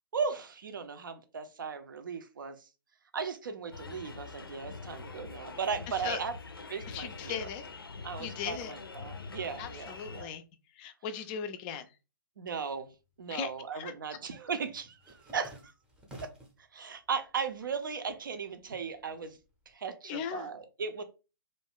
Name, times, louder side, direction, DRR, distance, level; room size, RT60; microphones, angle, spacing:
voice 1, 0.1-2.6 3.1-6.3 6.7-7.5 8.0-10.3 12.4-12.9 13.2-15.7 16.7-19.4 19.7-21.0, right 5 dB, 65° right, 0.6 m, -37 dB
sound 1, 3.7-10.2, left 4 dB, 85° left, 0.5 m, -44 dB
voice 2, 6.9-7.7 8.2-8.7 9.6-10.4 10.8-11.9 13.3-13.9 20.1-20.5, left 8 dB, 25° left, 0.3 m, -38 dB
sound 2, 13.1-13.5 13.8-16.7 17.1-17.8 18.1-19.7, right 1 dB, 5° right, 0.6 m, -53 dB
2.5 x 2.2 x 3.5 m
figure-of-eight pair, 125°, 12 cm